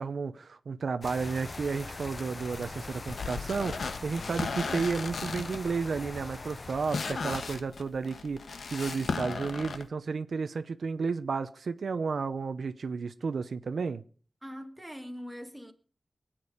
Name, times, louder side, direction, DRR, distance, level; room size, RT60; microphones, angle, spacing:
voice 1, 0.0-14.0, right 5 dB, 75° right, 0.8 m, -32 dB
sound 1, 1.0-7.6, left 3 dB, 35° left, 0.7 m, -42 dB
sound 2, 3.1-9.8, left 4 dB, 80° left, 1.2 m, -36 dB
voice 2, 14.4-15.7, equal, 5° right, 1.8 m, -42 dB
23.5 x 9.0 x 5.1 m
wide cardioid pair, 125°, 0 cm